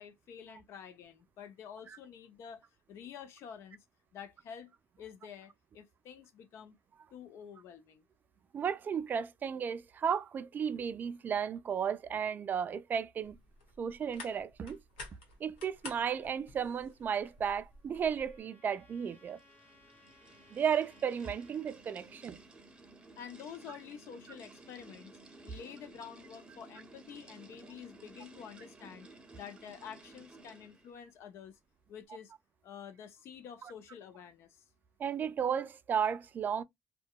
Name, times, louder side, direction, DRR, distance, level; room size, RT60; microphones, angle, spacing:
voice 1, 0.0-2.6 2.9-3.8 4.1-4.7 5.0-6.8 7.1-8.0 23.2-25.1 25.4-29.1 29.3-31.6 31.9-32.3 32.6-34.6, left 8 dB, 60° left, 0.5 m, -49 dB
voice 2, 8.5-13.4 13.8-14.8 15.4-19.4 20.5-22.4 33.6-33.7 35.0-36.6, right 7 dB, 35° right, 0.4 m, -34 dB
sound 1, 13.2-18.4, left 2 dB, 85° left, 1.0 m, -51 dB
Trumpet, 17.3-21.8, left 2 dB, 35° left, 1.3 m, -64 dB
sound 2, 18.8-31.0, right 2 dB, 15° right, 0.7 m, -55 dB
2.6 x 2.2 x 2.2 m
hypercardioid pair, 75°, 5 cm